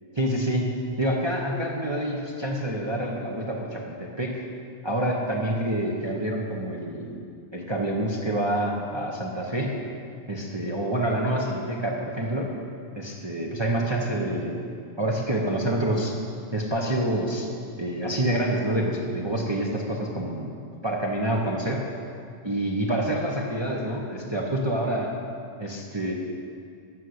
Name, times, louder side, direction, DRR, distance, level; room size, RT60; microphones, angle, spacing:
voice 1, 0.1-0.7 1.0-4.4 4.8-7.2 7.5-9.8 10.3-12.5 12.9-14.6 15.0-16.1 16.5-17.5 17.8-20.5 20.8-21.9 22.4-25.1 25.6-26.1, right 1 dB, 20° right, -1 dB, 1.0 m, -27 dB
12.5 x 6.5 x 8.0 m, 2.4 s
omnidirectional pair, 1.6 m